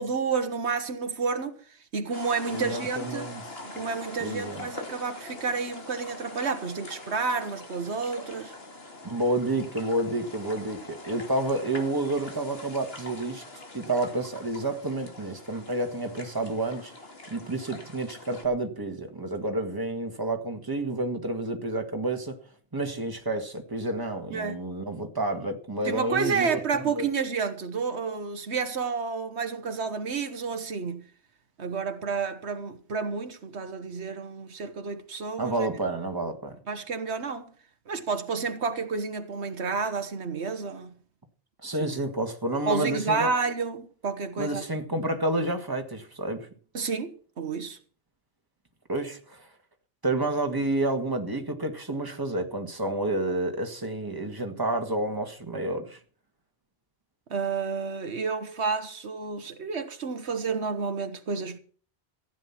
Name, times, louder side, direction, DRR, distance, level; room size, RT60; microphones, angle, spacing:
voice 1, 0.0-1.6 1.9-3.3 3.6-8.5 24.3-24.6 25.8-31.1 31.6-35.7 36.7-37.5 37.9-40.9 41.8-41.9 42.7-44.6 46.7-47.8 57.3-61.6, right 5 dB, 85° right, 1.5 m, -30 dB
sound 1, 2.1-18.5, left 2 dB, 65° left, 2.7 m, -43 dB
voice 2, 2.5-3.4 4.2-4.7 9.0-13.4 13.7-16.9 17.3-22.4 22.7-27.1 35.4-36.6 41.6-43.3 44.4-46.5 48.9-49.5 50.0-56.0, right 2 dB, 20° right, 1.8 m, -29 dB
15.0 x 9.5 x 5.9 m
omnidirectional pair, 1.1 m